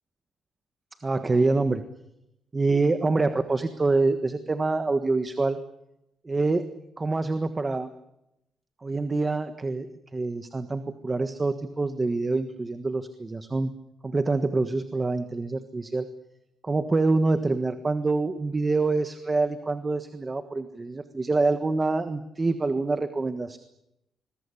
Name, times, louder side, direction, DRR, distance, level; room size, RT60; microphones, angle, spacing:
voice 1, 1.0-1.8 2.5-5.6 6.2-6.7 7.0-7.9 8.8-9.9 10.1-13.7 14.0-16.1 16.6-23.6, right 3 dB, 20° right, 9 dB, 1.5 m, -26 dB
26.5 x 21.5 x 10.0 m, 0.85 s
cardioid pair, 145°, 0 cm